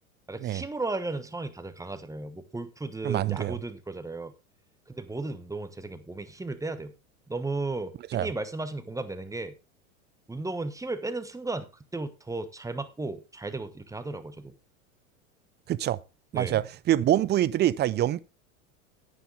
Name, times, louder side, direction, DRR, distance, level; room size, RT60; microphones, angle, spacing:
voice 1, 0.3-4.3 4.9-6.9 7.3-9.6 10.3-11.7 11.9-14.5 16.3-16.6, right 2 dB, 10° right, 1.1 m, -35 dB
voice 2, 3.0-3.6 8.1-8.3 15.7-16.0 16.3-18.2, right 13 dB, 25° right, 0.5 m, -25 dB
9.5 x 9.2 x 3.9 m
hypercardioid pair, 90°, 42 cm